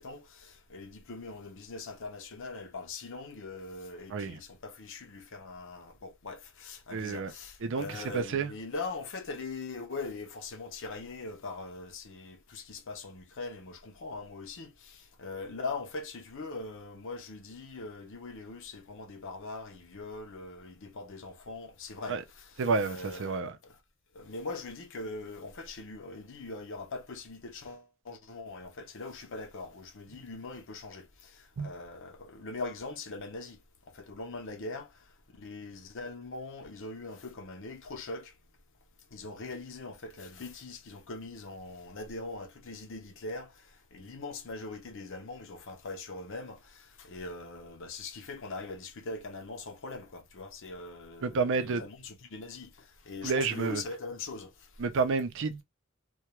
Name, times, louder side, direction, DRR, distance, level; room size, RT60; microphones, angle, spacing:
voice 1, 0.0-23.8 24.1-33.6 33.9-34.9 35.3-38.3 39.1-54.7, left 3 dB, 65° left, 0.7 m, -41 dB
voice 2, 6.9-7.3 7.6-8.5 22.1-22.2 22.6-23.5 31.6-31.7 51.2-51.8 53.2-53.8 54.8-55.6, right 4 dB, 60° right, 0.5 m, -30 dB
2.3 x 2.2 x 2.9 m
head